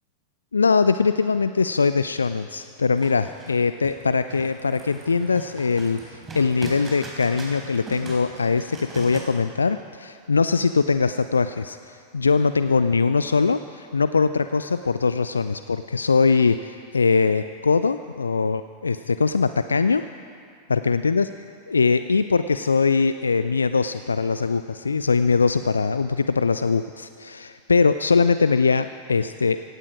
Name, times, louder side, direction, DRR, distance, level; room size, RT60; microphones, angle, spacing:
voice 1, 0.5-20.1 20.7-21.3 21.7-29.6, left 4 dB, 75° left, 12 dB, 0.3 m, -22 dB
sound 1, 3.0-9.2, right 2 dB, 20° right, 4.2 m, -39 dB
17.5 x 16.0 x 4.9 m, 2.3 s
figure-of-eight pair, 90°, 0 cm